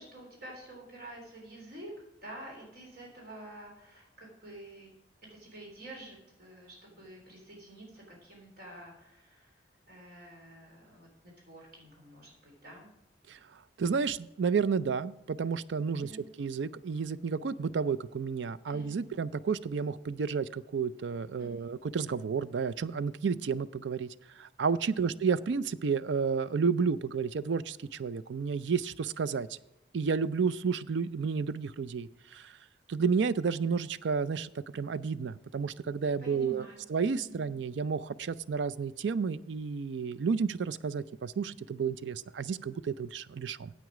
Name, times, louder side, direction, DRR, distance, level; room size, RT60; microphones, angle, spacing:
voice 1, 0.0-4.9 5.3-12.9 16.0-16.2 18.6-19.1 21.4-21.7 24.9-25.2 36.2-36.8 37.2-37.5, right 1 dB, 60° right, -1 dB, 3.4 m, -49 dB
voice 2, 13.8-16.1 16.4-24.1 24.4-29.6 29.9-32.5 32.9-43.7, right 5 dB, 85° right, 17 dB, 0.4 m, -31 dB
9.3 x 8.4 x 4.9 m, 0.93 s
head